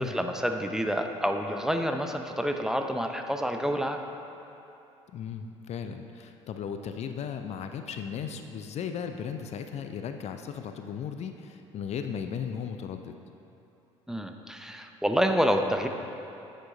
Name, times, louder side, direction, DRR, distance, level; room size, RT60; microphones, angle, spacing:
voice 1, 0.0-4.0 14.1-15.9, equal, 5° right, 4 dB, 0.6 m, -28 dB
voice 2, 5.1-13.1, left 7 dB, 45° left, 7 dB, 0.5 m, -36 dB
10.0 x 7.4 x 3.8 m, 2.8 s
figure-of-eight pair, 55°, 16 cm